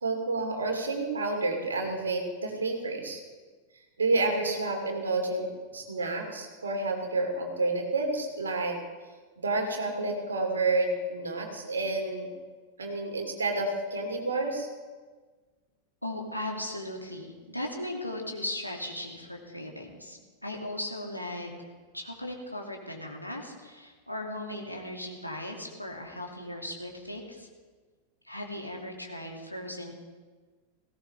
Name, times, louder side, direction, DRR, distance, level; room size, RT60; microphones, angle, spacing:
voice 1, 0.0-3.2 4.0-5.5 5.7-8.8 9.4-12.3 12.8-14.7, right 2 dB, 70° right, 2 dB, 2.6 m, -29 dB
voice 2, 16.0-21.5 21.9-27.5 28.2-29.9, left 1 dB, 90° left, 0 dB, 2.1 m, -37 dB
18.0 x 16.5 x 3.3 m, 1.4 s
figure-of-eight pair, 90°, 0 cm